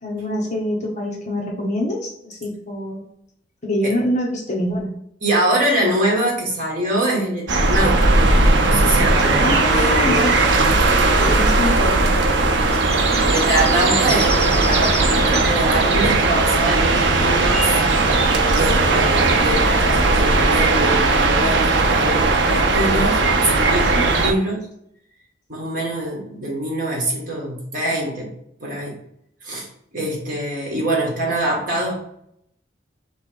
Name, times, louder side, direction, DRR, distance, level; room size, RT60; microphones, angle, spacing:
voice 1, 0.0-3.0 3.6-5.0 9.2-10.4 11.1-12.2 23.9-24.1, left 1 dB, 40° left, -1 dB, 1.0 m, -25 dB
voice 2, 5.2-8.3 8.6-10.3 13.2-17.8 18.5-24.7 25.5-28.3 28.6-29.0 29.4-29.7 29.9-31.9, right 1 dB, 45° right, -2 dB, 1.5 m, -24 dB
sound 1, 7.5-24.3, right 2 dB, 70° right, 0.6 m, -17 dB
sound 2, 12.7-18.7, right 2 dB, 15° right, 0.4 m, -31 dB
3.4 x 3.3 x 4.5 m, 0.73 s
head